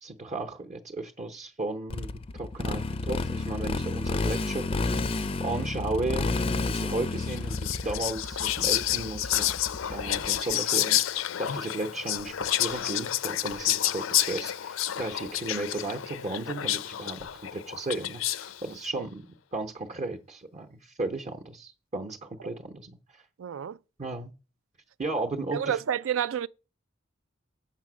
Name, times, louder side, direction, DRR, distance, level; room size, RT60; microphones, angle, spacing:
voice 1, 0.0-5.0 5.4-9.6 9.9-19.2 19.5-23.3 24.0-24.3 25.0-25.8, right 2 dB, 35° right, 0.8 m, -35 dB
Motorcycle, 1.9-10.5, left 3 dB, 30° left, 0.4 m, -31 dB
Whispering, 7.2-18.6, left 13 dB, 85° left, 0.4 m, -29 dB
voice 2, 23.4-23.8 25.5-26.5, right 9 dB, 80° right, 0.4 m, -29 dB
7.3 x 6.6 x 6.1 m
head